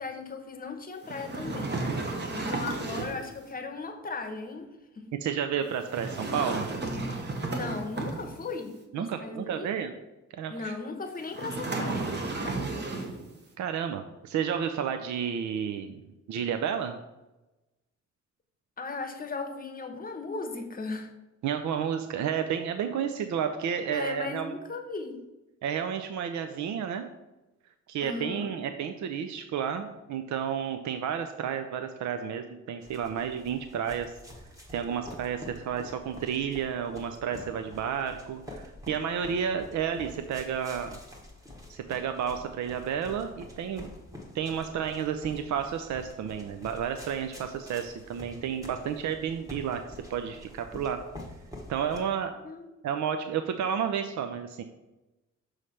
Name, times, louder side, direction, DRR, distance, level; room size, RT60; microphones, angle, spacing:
voice 1, 0.0-1.7 2.3-4.7 4.9-5.1 7.5-9.7 10.5-12.2 12.4-12.9 18.8-21.1 23.9-25.2 28.0-28.5 52.4-52.7, left 3 dB, 30° left, 5 dB, 0.8 m, -37 dB
sound 1, 1.0-3.3 5.8-8.6 11.3-13.3, right 3 dB, 35° right, 1.0 m, -33 dB
voice 2, 5.2-6.7 8.9-9.9 10.4-10.7 13.6-16.0 16.3-17.0 21.4-24.5 25.6-27.1 27.9-34.1 34.7-41.0 41.7-43.9 44.3-51.0 51.7-52.3 52.8-54.6, right 8 dB, 70° right, 7 dB, 0.5 m, -31 dB
sound 2, 32.8-52.0, left 1 dB, 10° right, 1.2 m, -47 dB
6.3 x 3.2 x 5.6 m, 1.0 s
wide cardioid pair, 135°, 30 cm